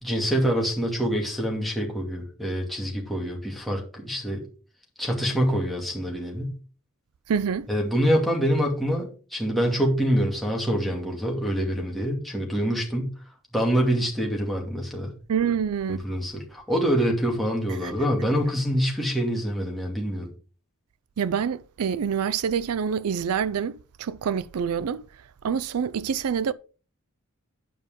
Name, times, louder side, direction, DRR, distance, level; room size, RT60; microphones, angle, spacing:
voice 1, 0.0-4.4 5.0-6.5 7.7-13.1 13.5-15.1 15.9-20.3, equal, ahead, 2.4 m, -25 dB
voice 2, 7.3-7.7 15.3-16.0 17.8-17.9 21.2-25.0 25.4-26.5, right 7 dB, 85° right, 0.4 m, -26 dB
9.6 x 5.2 x 5.0 m
head